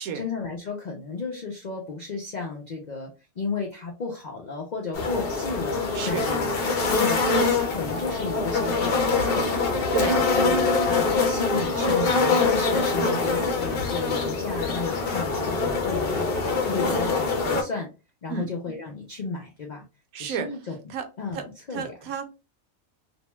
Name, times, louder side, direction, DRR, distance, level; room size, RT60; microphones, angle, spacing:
voice 1, 0.0-3.1 3.4-6.6 6.9-17.9 18.2-19.8 20.2-20.8 21.2-21.9, left 4 dB, 80° left, 1 dB, 0.4 m, -34 dB
sound 1, 4.9-17.6, left 3 dB, 55° left, 0.7 m, -24 dB
voice 2, 5.9-6.3 9.9-10.2 13.0-13.5 18.3-18.5 20.1-20.5 20.9-21.0 21.3-21.4 21.7-22.3, right 7 dB, 80° right, 6 dB, 1.1 m, -31 dB
2.6 x 2.2 x 2.9 m, 0.30 s
omnidirectional pair, 1.5 m